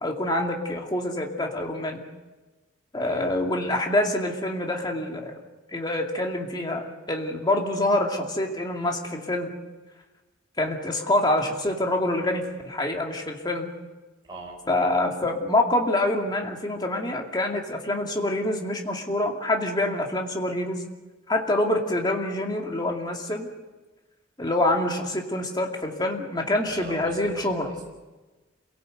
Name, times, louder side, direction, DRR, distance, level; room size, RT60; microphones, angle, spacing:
voice 1, 0.0-2.0 2.9-5.3 5.7-9.5 10.6-13.7 14.7-20.8 21.3-23.5 24.4-27.7, left 1 dB, 20° left, 1 dB, 2.4 m, -26 dB
voice 2, 14.2-14.6 26.7-27.9, right 2 dB, 20° right, -2 dB, 4.4 m, -40 dB
27.0 x 17.5 x 8.0 m, 1.2 s
head